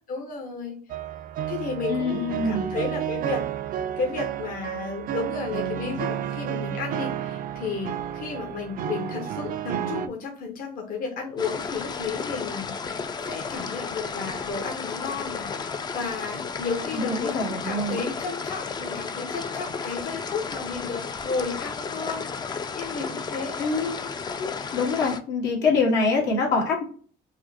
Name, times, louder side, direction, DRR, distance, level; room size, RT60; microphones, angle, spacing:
voice 1, 0.1-0.8 1.5-3.4 4.0-23.6, left 4 dB, 55° left, 1 dB, 0.8 m, -33 dB
sound 1, 0.9-10.1, right 10 dB, 55° right, 0.4 m, -31 dB
voice 2, 1.9-2.7 16.9-18.0 23.6-24.0 24.4-26.8, left 3 dB, 90° left, -1 dB, 1.4 m, -25 dB
sound 2, 11.4-25.2, left 5 dB, 25° left, 0.3 m, -33 dB
4.7 x 2.0 x 2.7 m, 0.43 s
cardioid pair, 110°, 17 cm